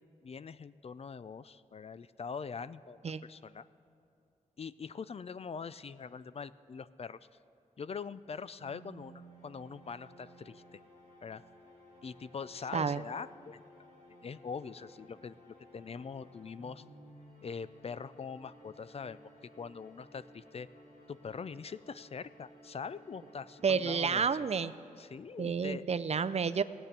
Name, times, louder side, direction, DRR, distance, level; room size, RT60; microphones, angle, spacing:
voice 1, 0.0-3.7 4.6-7.2 7.8-10.8 11.2-11.4 12.0-13.6 14.2-15.4 15.7-16.8 17.4-19.2 19.6-20.7 21.1-24.3 25.0-25.8, left 5 dB, 45° left, 16 dB, 0.3 m, -43 dB
sound 1, 8.6-25.3, equal, 70° left, 3.5 m, -57 dB
voice 2, 23.6-24.8 25.4-26.6, right 6 dB, 50° right, 14 dB, 0.4 m, -30 dB
16.5 x 8.8 x 6.7 m, 2.5 s
wide cardioid pair, 85°, 14 cm